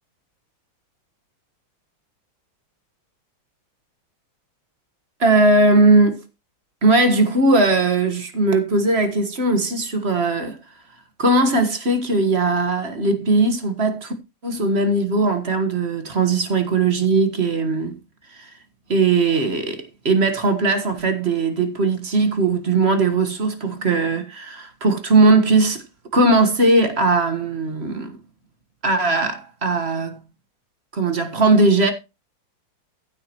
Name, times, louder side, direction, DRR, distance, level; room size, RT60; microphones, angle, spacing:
voice 1, 5.2-6.2 6.8-10.6 11.2-14.1 14.4-17.9 18.3-18.5 18.9-25.8 26.1-28.2 28.8-30.2 30.9-31.9, right 2 dB, 35° right, 1.6 m, -19 dB
15.0 x 8.7 x 3.0 m
omnidirectional pair, 2.1 m